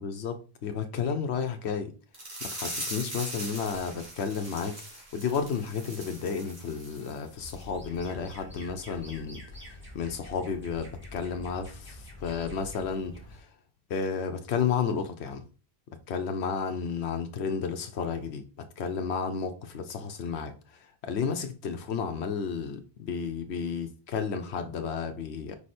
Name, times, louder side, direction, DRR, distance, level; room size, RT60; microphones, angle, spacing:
voice 1, 0.0-1.9 2.5-9.4 9.9-13.5 13.9-15.4 16.1-18.4 18.8-25.5, left 6 dB, 90° left, 1.0 m, -32 dB
sound 1, 2.1-7.2 7.5-7.6 8.0-8.1, right 1 dB, 70° right, 2.5 m, -40 dB
sound 2, 7.4-13.4, left 1 dB, 10° right, 2.4 m, -46 dB
5.1 x 4.9 x 4.2 m
omnidirectional pair, 1.1 m